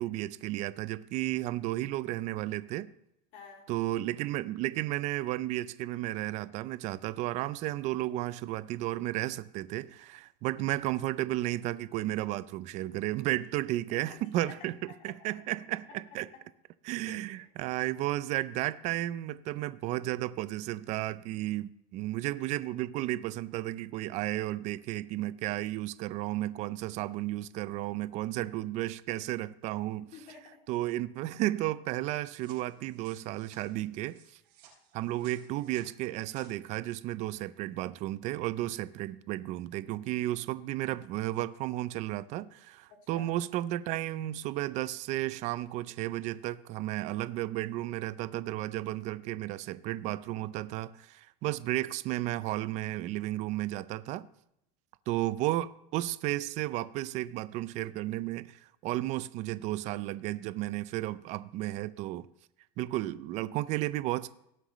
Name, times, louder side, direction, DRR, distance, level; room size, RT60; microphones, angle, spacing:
voice 1, 0.0-2.9 3.7-14.7 15.0-16.3 16.8-30.1 30.7-34.2 34.9-54.3 55.1-62.3 62.8-64.3, right 16 dB, 35° right, 0.4 m, -33 dB
voice 2, 3.3-3.7 13.9-15.4 17.1-17.5 30.1-30.6 42.9-43.3, left 6 dB, 45° left, 2.8 m, -51 dB
sound 1, 32.4-36.5, right 7 dB, 85° right, 4.9 m, -59 dB
18.5 x 7.8 x 3.1 m
supercardioid pair, 155°, 20 cm